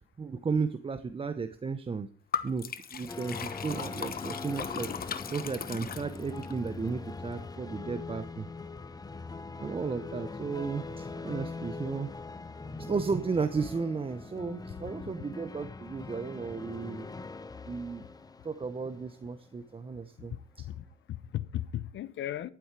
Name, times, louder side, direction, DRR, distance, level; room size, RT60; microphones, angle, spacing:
voice 1, 0.2-2.1 2.4-4.9 5.3-8.5 9.6-12.1 12.8-17.1 17.7-18.0 18.4-20.7, right 5 dB, 25° right, 0.9 m, -34 dB
Liquid, 2.3-6.5, left 7 dB, 50° left, 1.1 m, -37 dB
sound 1, 3.1-19.9, left 3 dB, 20° left, 0.8 m, -42 dB
voice 2, 20.6-22.5, left 12 dB, 70° left, 0.8 m, -36 dB
11.5 x 9.7 x 4.8 m
cardioid pair, 90°, 20 cm